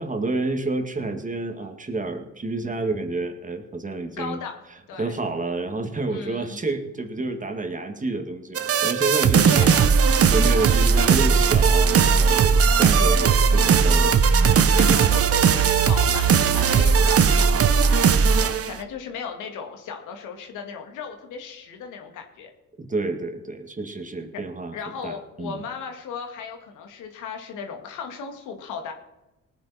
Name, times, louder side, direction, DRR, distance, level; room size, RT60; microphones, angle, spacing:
voice 1, 0.0-4.4 5.0-9.7 10.3-14.2 22.8-24.8 25.0-25.6, right 3 dB, 25° right, 5 dB, 2.1 m, -29 dB
voice 2, 4.2-4.6 4.9-5.2 6.1-6.6 9.4-9.9 14.8-22.5 24.7-28.9, left 6 dB, 90° left, 4 dB, 2.2 m, -36 dB
sound 1, 8.5-18.8, right 6 dB, 50° right, 1.0 m, -18 dB
19.0 x 9.5 x 4.3 m, 1.0 s
cardioid pair, 90°, 30 cm